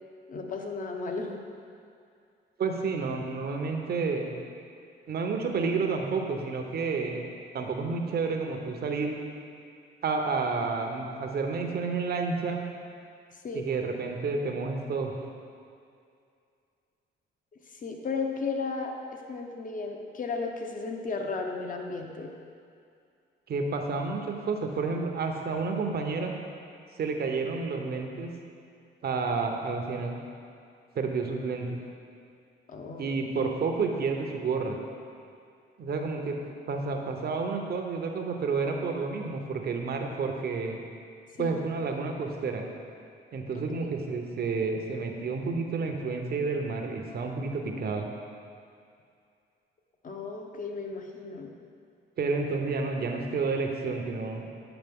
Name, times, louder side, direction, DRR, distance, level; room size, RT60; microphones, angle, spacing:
voice 1, 0.3-1.4 13.4-13.7 17.7-22.3 32.7-33.1 41.3-41.6 43.8-43.9 50.0-51.5, left 4 dB, 40° left, 3 dB, 0.8 m, -34 dB
voice 2, 2.6-4.3 5.1-7.3 7.5-9.2 10.0-12.6 13.5-15.1 23.5-26.3 27.0-28.3 29.0-30.2 30.9-31.8 33.0-34.8 35.8-36.4 36.7-40.8 41.4-42.6 43.3-48.1 52.2-54.5, right 4 dB, 50° right, 3 dB, 0.8 m, -30 dB
8.0 x 5.1 x 3.6 m, 2.4 s
cardioid pair, 90°, 20 cm